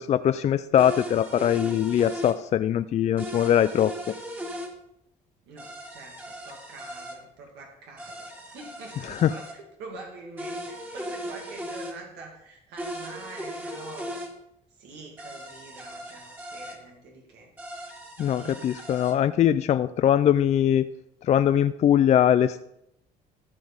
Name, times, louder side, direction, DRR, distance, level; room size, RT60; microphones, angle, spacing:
voice 1, 0.0-3.9 9.1-9.3 18.2-20.9 21.2-22.6, left 10 dB, 40° left, 12 dB, 0.4 m, -22 dB
sound 1, 0.8-2.4 3.2-4.7 5.6-7.2 8.0-9.6 10.4-12.0 12.8-14.3 15.2-16.8 17.6-19.2, equal, 10° right, 1.9 m, -38 dB
voice 2, 5.5-14.2 14.8-17.5 18.3-18.7, right 3 dB, 85° right, 0 dB, 2.3 m, -45 dB
14.0 x 5.1 x 5.2 m, 0.81 s
cardioid pair, 110°, 17 cm